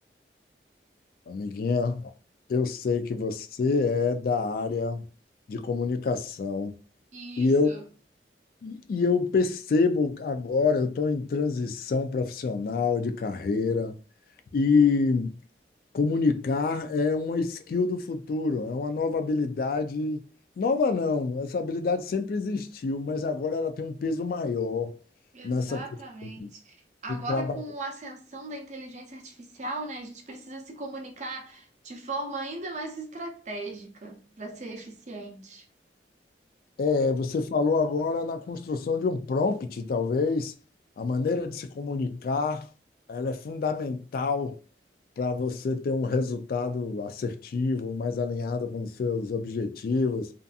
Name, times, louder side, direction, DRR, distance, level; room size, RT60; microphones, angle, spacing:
voice 1, 1.3-2.1 2.5-5.0 5.5-6.7 7.4-7.7 8.6-13.9 14.5-15.3 15.9-20.2 20.6-25.0 25.4-25.8 26.4-26.5 27.3-27.6 36.8-40.5 41.0-42.7 43.1-44.6 45.2-50.3, left 4 dB, 55° left, 0.3 m, -27 dB
voice 2, 7.1-7.8 25.3-35.7, right 2 dB, 40° right, 0.6 m, -38 dB
2.6 x 2.4 x 2.3 m
head